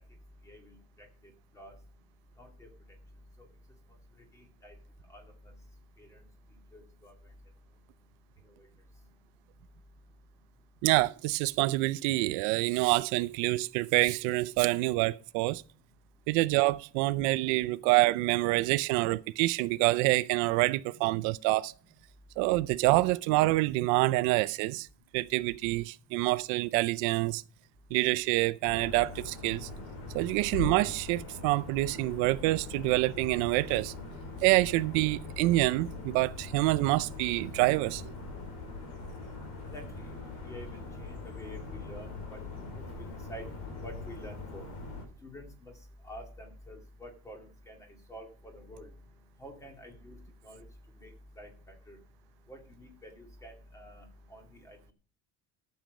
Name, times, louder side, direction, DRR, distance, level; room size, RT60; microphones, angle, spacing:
voice 1, 2.4-2.7 4.3-4.7 5.1-5.2 6.0-6.1 6.7-7.1 39.7-42.4 42.7-43.4 43.8-44.7 45.2-45.7 46.0-48.9 49.4-50.2 50.4-50.6 51.0-51.1 51.4-51.5 51.9-52.0 52.5-54.0 54.3-54.9, equal, 10° left, 2.2 m, -48 dB
voice 2, 10.8-15.6 16.3-21.7 22.4-24.9 25.1-27.4 27.9-29.7 30.1-33.9 34.4-38.0, right 20 dB, 80° right, 0.5 m, -27 dB
sound 1, 28.6-45.0, left 3 dB, 85° left, 3.9 m, -42 dB
12.0 x 7.3 x 5.0 m
cardioid pair, 170°, 31 cm